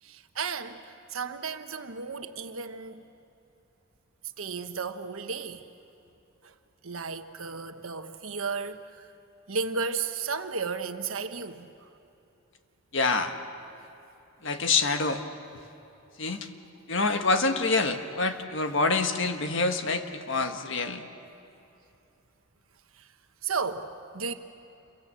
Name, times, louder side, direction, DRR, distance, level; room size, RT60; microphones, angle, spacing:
voice 1, 0.0-3.0 4.4-5.6 6.4-6.5 6.8-9.1 9.5-11.7 16.3-16.4 22.9-23.1 23.4-24.3, right 5 dB, 85° right, 8 dB, 1.3 m, -34 dB
voice 2, 12.9-13.3 14.4-15.2 15.5-15.6 16.2-16.5 16.9-21.1, left 3 dB, 65° left, 6 dB, 1.5 m, -26 dB
29.0 x 23.5 x 7.6 m, 2.9 s
head